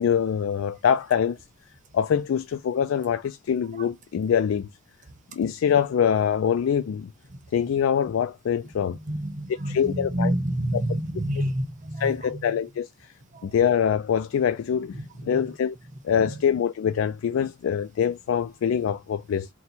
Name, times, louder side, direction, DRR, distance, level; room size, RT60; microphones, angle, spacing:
voice 1, 0.0-1.4 1.9-4.7 5.3-7.1 7.5-9.0 9.5-10.3 10.7-10.8 12.0-12.9 13.4-15.8 16.0-19.5, left 8 dB, 85° left, 0.3 m, -24 dB
voice 2, 9.1-12.4 13.3-13.5 15.2-15.3, right 1 dB, 40° right, 0.8 m, -28 dB
4.0 x 2.2 x 4.3 m
head